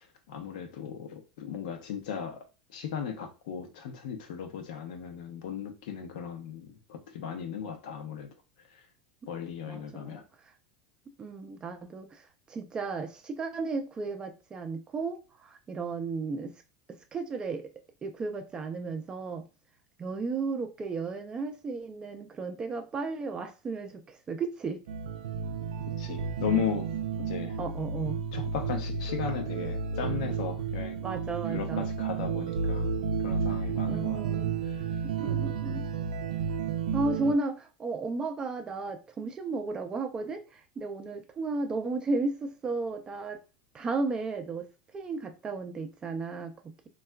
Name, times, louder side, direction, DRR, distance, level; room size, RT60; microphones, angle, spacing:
voice 1, 0.3-2.4 2.7-8.3 9.3-10.2 26.0-26.9 27.3-27.6 28.3-31.0 31.5-34.2, left 8 dB, 75° left, 0.6 m, -36 dB
voice 2, 9.7-10.2 11.2-16.5 16.9-17.6 18.0-19.5 20.0-24.8 27.6-28.2 31.0-31.9 33.9-34.5 35.0-35.9 36.9-43.4 43.7-44.7 44.9-46.9, right 3 dB, 20° right, 0.4 m, -34 dB
sound 1, 24.9-37.3, right 6 dB, 85° right, 0.4 m, -32 dB
3.6 x 2.3 x 2.2 m
supercardioid pair, 125°, 4 cm